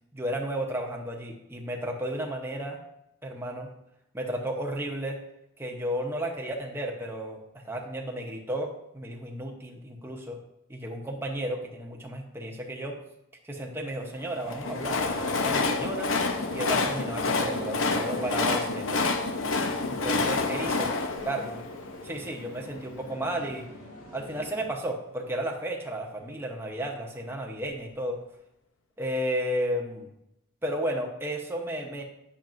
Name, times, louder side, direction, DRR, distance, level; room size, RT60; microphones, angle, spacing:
voice 1, 0.1-2.8 3.2-3.7 4.1-5.2 5.6-10.4 10.7-13.0 13.4-16.1 16.5-19.1 19.9-21.0 21.3-21.5 22.0-23.7 24.1-28.2 29.0-30.1 30.6-32.0, right 1 dB, 10° right, 0 dB, 0.8 m, -33 dB
Train, 14.3-22.5, left 3 dB, 65° left, 0.7 m, -28 dB
sound 1, 16.1-24.7, left 1 dB, 85° left, 1.7 m, -45 dB
8.9 x 6.6 x 2.6 m, 0.84 s
head